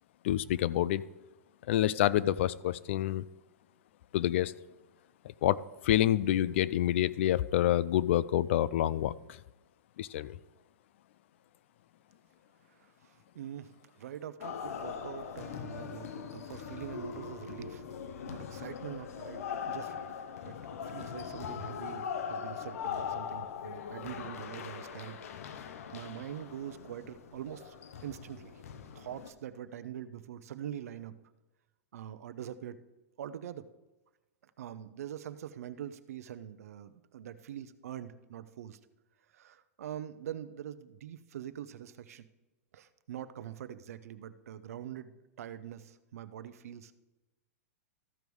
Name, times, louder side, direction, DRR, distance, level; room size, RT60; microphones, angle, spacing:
voice 1, 0.2-1.0 1.7-3.2 4.1-4.5 5.2-9.4 10.0-10.4, left 12 dB, 50° left, 19 dB, 0.3 m, -28 dB
voice 2, 12.7-17.8 18.2-20.1 20.4-20.6 20.8-25.4 25.9-27.8 28.0-28.5 28.9-31.2 31.9-32.8 33.2-33.7 34.6-38.8 39.3-42.2 42.7-45.1 45.4-46.9, right 10 dB, 70° right, 13 dB, 0.6 m, -44 dB
sound 1, 14.4-29.3, left 7 dB, 65° left, 0.8 m, -41 dB
13.5 x 5.3 x 4.7 m, 1.1 s
supercardioid pair, 165°, 8 cm